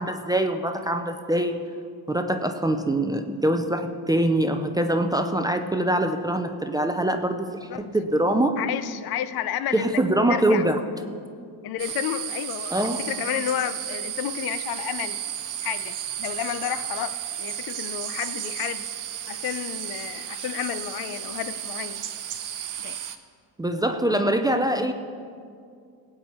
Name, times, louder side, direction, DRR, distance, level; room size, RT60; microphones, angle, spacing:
voice 1, 0.0-1.6 2.1-8.6 9.7-10.8 12.7-13.0 23.6-24.9, right 1 dB, 10° right, 6 dB, 0.4 m, -24 dB
voice 2, 8.6-10.0 10.3-10.7 11.6-15.2 15.6-18.9 19.3-22.1 22.8-23.0, left 11 dB, 60° left, 13 dB, 0.6 m, -31 dB
sound 1, 11.8-23.2, right 10 dB, 50° right, 0.8 m, -33 dB
19.0 x 8.7 x 4.3 m, 2.3 s
cardioid pair, 145°, 41 cm